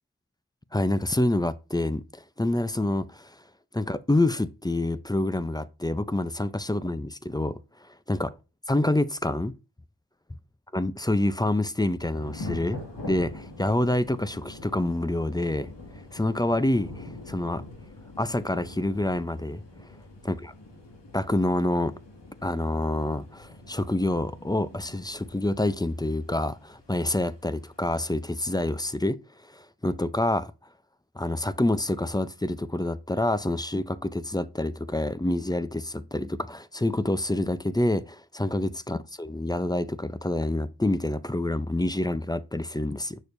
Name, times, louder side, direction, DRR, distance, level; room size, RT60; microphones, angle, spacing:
voice 1, 0.7-2.0 2.4-3.3 3.7-7.6 8.1-8.3 8.7-9.5 10.7-12.8 13.0-15.7 16.1-17.6 18.2-19.6 20.3-20.4 21.1-21.9 22.4-29.2 29.5-30.5 31.2-43.2, left 1 dB, 10° left, 0.5 m, -27 dB
Thunder / Rain, 12.0-28.3, left 2 dB, 80° left, 2.1 m, -44 dB
7.0 x 6.3 x 2.6 m
cardioid pair, 50°, 42 cm